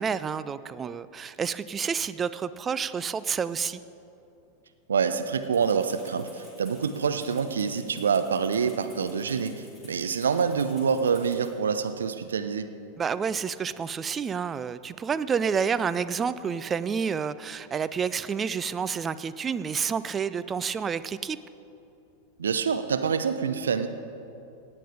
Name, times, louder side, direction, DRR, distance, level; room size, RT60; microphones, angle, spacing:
voice 1, 0.0-3.8 13.0-21.4, right 6 dB, 20° right, 14 dB, 0.4 m, -29 dB
voice 2, 4.9-12.7 22.4-23.9, right 6 dB, 70° right, 9 dB, 0.7 m, -26 dB
Rattle (instrument), 5.5-11.5, left 1 dB, ahead, 3.4 m, -53 dB
17.0 x 8.7 x 5.1 m, 2.8 s
figure-of-eight pair, 90°, 0 cm